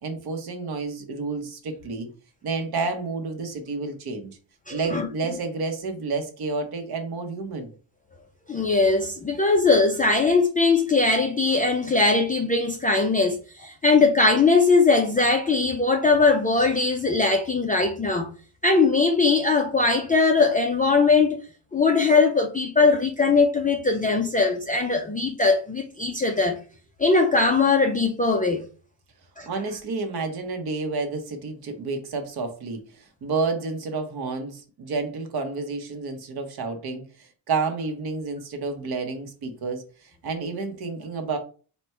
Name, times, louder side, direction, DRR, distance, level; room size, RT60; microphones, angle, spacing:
voice 1, 0.0-2.1 2.4-4.4 4.7-7.7 29.5-41.4, right 4 dB, 50° right, 1.0 m, -30 dB
voice 2, 4.7-5.1 8.5-18.3 18.6-21.4 21.7-26.6 27.0-28.6 29.4-29.5, left 3 dB, 20° left, 0.3 m, -20 dB
4.2 x 2.2 x 4.4 m
cardioid pair, 150°, 47 cm